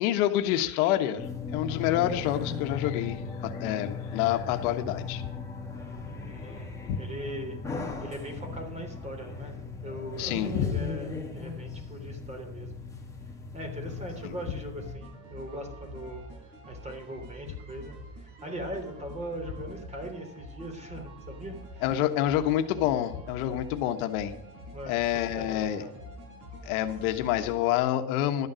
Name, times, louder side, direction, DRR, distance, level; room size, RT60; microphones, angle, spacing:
voice 1, 0.0-5.3 6.9-7.0 10.2-10.8 14.2-14.3 21.8-24.3 24.8-25.8 26.6-28.5, left 12 dB, 85° left, 8 dB, 1.4 m, -27 dB
sound 1, 1.2-14.9, left 4 dB, 5° left, 2.1 m, -37 dB
voice 2, 6.3-7.6 8.0-9.6 9.8-12.8 13.5-16.2 16.7-21.8 24.7-25.9, right 1 dB, 15° right, 4 dB, 3.3 m, -40 dB
sound 2, 14.8-27.8, equal, 45° right, 6.1 m, -46 dB
12.5 x 9.6 x 6.3 m, 0.80 s
cardioid pair, 155°, 42 cm